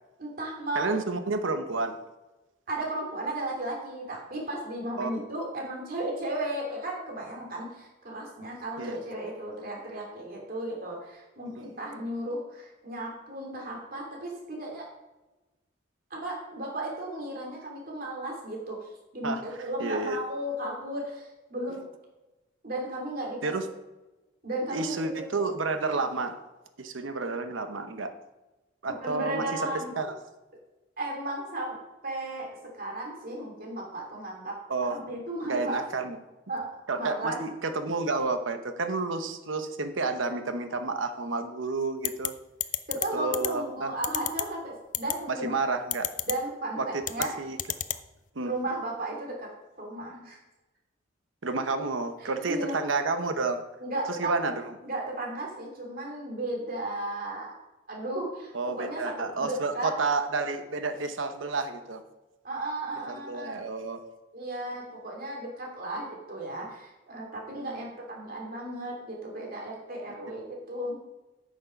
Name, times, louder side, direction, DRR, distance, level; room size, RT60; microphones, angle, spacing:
voice 1, 0.2-0.9 2.7-14.9 16.1-21.8 22.6-23.5 24.4-25.0 29.0-29.9 31.0-31.8 32.0-34.6 34.9-35.8 36.5-36.7 36.9-37.4 42.9-45.5 46.2-47.3 48.4-49.5 49.8-50.4 52.4-52.8 53.8-54.4 54.8-57.6 57.9-59.9 62.4-63.6 64.3-71.0, right 1 dB, 45° right, -1 dB, 2.9 m, -35 dB
voice 2, 0.7-2.0 5.0-5.1 8.8-9.0 11.5-11.7 19.2-20.2 23.4-23.7 24.7-26.3 26.8-28.1 28.8-30.1 34.7-35.0 35.4-36.2 36.9-42.3 43.1-43.9 45.3-46.1 46.8-47.0 47.4-47.6 48.3-48.5 51.4-53.6 54.1-54.7 58.5-62.0 63.1-64.0 67.5-67.8, right 3 dB, 80° right, 8 dB, 0.9 m, -30 dB
sound 1, 42.0-42.3 42.6-43.1 43.3-43.5 44.0-44.4 44.9-45.1 45.9-46.3 47.0-47.3 47.6-48.0, left 13 dB, 40° left, 0.5 m, -28 dB
9.1 x 6.3 x 5.8 m, 1.1 s
head